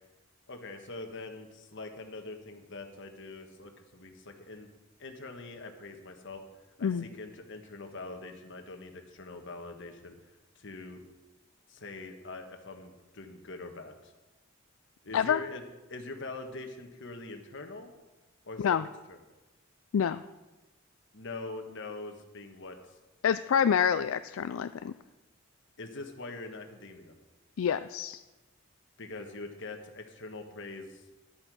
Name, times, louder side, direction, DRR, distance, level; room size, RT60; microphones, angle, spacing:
voice 1, 0.5-4.7 5.0-6.4 6.8-10.2 10.5-11.0 11.7-14.1 15.0-15.6 15.9-17.9 18.4-18.8 19.1-19.2 21.1-22.8 25.8-27.2 29.0-31.0, left 3 dB, 65° left, 5 dB, 1.5 m, -43 dB
voice 2, 23.2-24.9 27.6-28.2, left 7 dB, 80° left, 12 dB, 0.4 m, -27 dB
12.0 x 8.7 x 6.3 m, 1.1 s
head